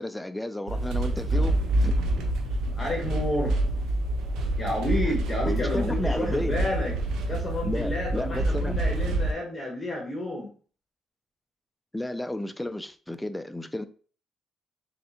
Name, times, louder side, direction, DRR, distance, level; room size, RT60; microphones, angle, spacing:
voice 1, 0.0-1.9 5.1-5.2 5.5-6.6 7.6-8.8 11.9-13.9, left 1 dB, 10° left, 0.4 m, -32 dB
sound 1, 0.7-9.3, right 1 dB, 85° right, 0.6 m, -27 dB
voice 2, 2.7-3.6 4.6-6.9 7.3-10.5, left 1 dB, 25° left, 1.1 m, -30 dB
3.5 x 3.2 x 2.9 m
cardioid pair, 90°, 0 cm